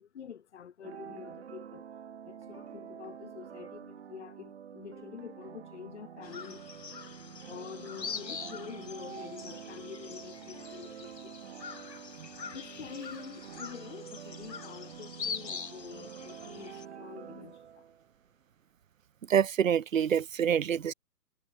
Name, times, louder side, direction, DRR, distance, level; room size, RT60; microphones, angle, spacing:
voice 1, 0.0-1.9 2.2-6.6 7.5-11.4 11.7-11.8 12.4-17.9, left 8 dB, 45° left, 2.6 m, -47 dB
sound 1, 0.8-18.1, right 8 dB, 40° right, 3.4 m, -47 dB
sound 2, 6.2-16.9, left 6 dB, 85° left, 3.3 m, -44 dB
voice 2, 19.3-20.9, right 8 dB, 55° right, 0.6 m, -26 dB
hypercardioid pair, 170°, 49 cm